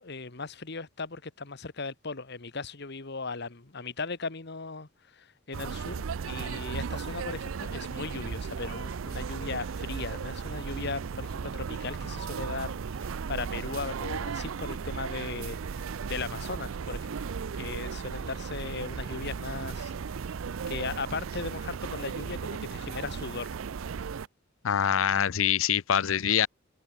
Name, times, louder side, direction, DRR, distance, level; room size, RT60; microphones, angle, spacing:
voice 1, 0.0-17.2 17.5-19.9 20.7-23.5, left 4 dB, 55° left, 1.5 m, -37 dB
sound 1, 5.5-24.3, right 6 dB, 85° right, 0.5 m, -36 dB
voice 2, 24.6-26.5, left 9 dB, 80° left, 0.6 m, -25 dB
head